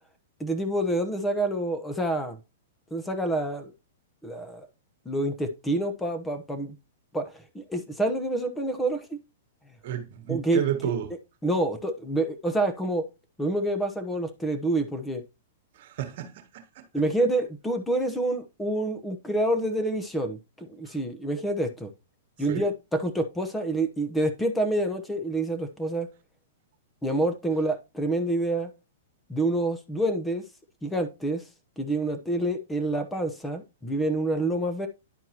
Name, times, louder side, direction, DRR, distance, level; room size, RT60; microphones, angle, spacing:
voice 1, 0.4-2.4 2.9-3.7 4.2-4.7 5.0-6.8 7.1-9.2 10.3-10.9 11.4-13.1 13.4-15.2 16.9-21.9 22.4-26.1 27.0-28.7 29.3-30.4 30.8-31.4 31.8-34.9, right 1 dB, 10° left, 1.0 m, -27 dB
voice 2, 9.8-11.1 15.7-16.8 22.5-22.7, right 10 dB, 55° right, 1.5 m, -31 dB
11.0 x 4.6 x 2.9 m
hypercardioid pair, 135°, 0 cm